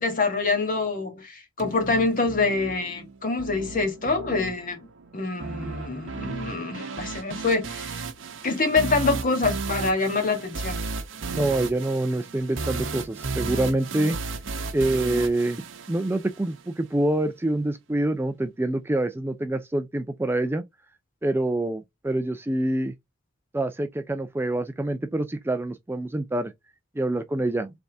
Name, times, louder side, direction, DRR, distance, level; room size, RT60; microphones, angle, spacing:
voice 1, 0.0-4.8 5.1-8.0 8.4-10.8, left 3 dB, 45° left, 1.5 m, -25 dB
sound 1, 1.6-16.6, right 4 dB, 70° right, 0.8 m, -34 dB
voice 2, 11.3-14.2 14.7-20.6 21.2-22.9 23.5-26.5 27.0-27.7, right 1 dB, 10° right, 0.4 m, -26 dB
4.0 x 3.5 x 3.4 m
head